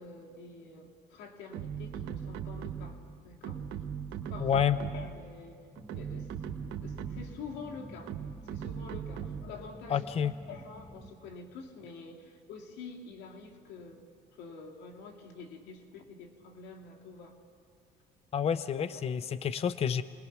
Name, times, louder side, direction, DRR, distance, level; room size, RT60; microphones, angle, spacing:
voice 1, 0.0-3.6 4.3-4.5 4.9-5.7 5.9-6.3 6.8-8.2 8.5-10.1 10.5-14.1 14.3-17.3 18.9-19.0, left 4 dB, 90° left, 2 dB, 2.7 m, -47 dB
sound 1, 1.5-3.1 3.4-5.2 5.8-7.4 8.1-9.6, right 8 dB, 90° right, 1.4 m, -39 dB
voice 2, 4.4-4.8 9.9-10.3 18.3-20.0, left 8 dB, 35° left, 14 dB, 0.6 m, -28 dB
sound 2, 5.8-11.1, right 1 dB, ahead, 1.2 m, -51 dB
29.0 x 21.0 x 6.1 m, 2.4 s
cardioid pair, 110°, 17 cm